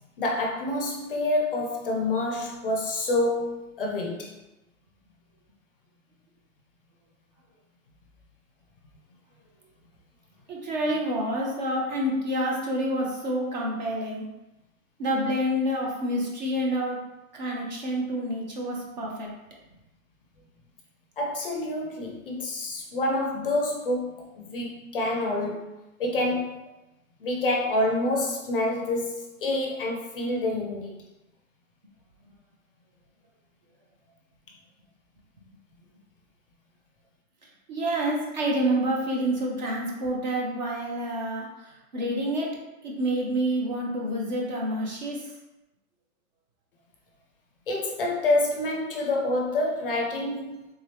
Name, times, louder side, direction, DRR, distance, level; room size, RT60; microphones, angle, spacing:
voice 1, 0.2-4.4 21.2-26.6 27.2-31.0 47.7-50.6, left 2 dB, 40° left, 0 dB, 0.5 m, -27 dB
voice 2, 10.5-14.3 15.0-17.0 17.3-19.3 37.7-42.5 42.8-45.3, right 1 dB, 30° right, -2 dB, 0.6 m, -28 dB
3.6 x 2.9 x 3.3 m, 0.99 s
hypercardioid pair, 165°, 43 cm